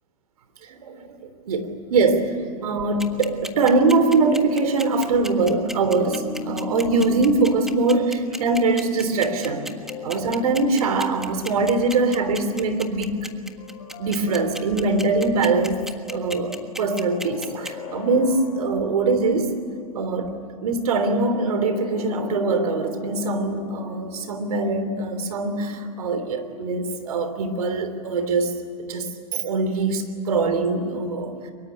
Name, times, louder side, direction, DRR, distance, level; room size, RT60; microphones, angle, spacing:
voice 1, 0.6-2.4 2.6-9.7 10.0-13.3 14.0-15.8 16.1-19.5 19.9-31.5, right 3 dB, 80° right, 9 dB, 3.2 m, -23 dB
sound 1, 3.0-17.7, right 1 dB, ahead, 1.6 m, -34 dB
sound 2, 6.0-13.0, left 5 dB, 15° left, 2.9 m, -39 dB
sound 3, 9.4-11.9 13.6-15.4 16.8-19.5 20.9-25.4, left 6 dB, 70° left, 6.1 m, -41 dB
23.5 x 22.5 x 10.0 m, 2.5 s
hypercardioid pair, 115°, 19 cm